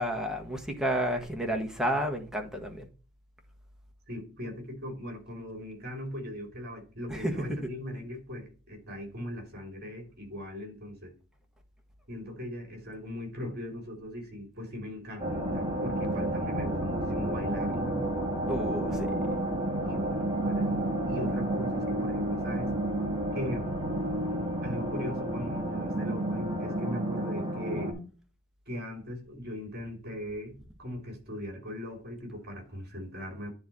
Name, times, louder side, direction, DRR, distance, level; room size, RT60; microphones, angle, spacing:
voice 1, 0.0-2.9 7.1-7.3 18.5-19.1, equal, 5° right, 1.4 m, -31 dB
voice 2, 4.1-11.1 12.1-18.0 18.9-19.2 19.8-22.8 23.3-23.7 24.3-28.0 28.7-33.5, left 1 dB, 45° right, 2.7 m, -39 dB
sound 1, 15.2-27.9, right 1 dB, 25° right, 1.8 m, -31 dB
10.0 x 3.4 x 4.2 m
head